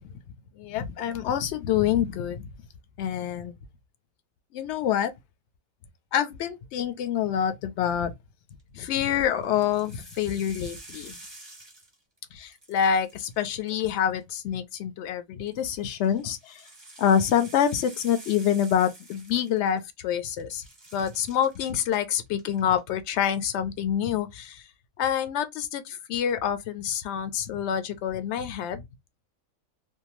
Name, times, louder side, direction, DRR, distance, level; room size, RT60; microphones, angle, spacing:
voice 1, 0.6-2.5 3.0-3.5 4.5-5.1 6.1-8.1 8.7-11.1 12.3-16.7 17.0-20.6 20.9-24.7 25.0-28.9, left 9 dB, 65° left, 0.7 m, -27 dB
sound 1, 8.6-8.9 9.4-12.2 12.5-14.3 15.5-20.0 20.3-22.0 22.3-22.8, right 2 dB, 20° right, 0.9 m, -49 dB
2.6 x 2.2 x 2.9 m
omnidirectional pair, 1.5 m